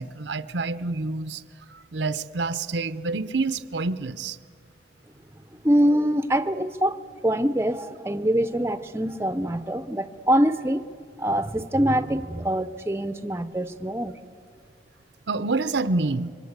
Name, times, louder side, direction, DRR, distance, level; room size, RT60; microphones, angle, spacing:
voice 1, 0.0-1.4 1.7-4.4 15.3-16.3, right 3 dB, 85° right, 12 dB, 0.8 m, -27 dB
voice 2, 5.6-7.0 7.2-10.8 11.2-14.2, equal, 15° right, 11 dB, 0.6 m, -24 dB
26.0 x 23.5 x 8.1 m, 2.3 s
head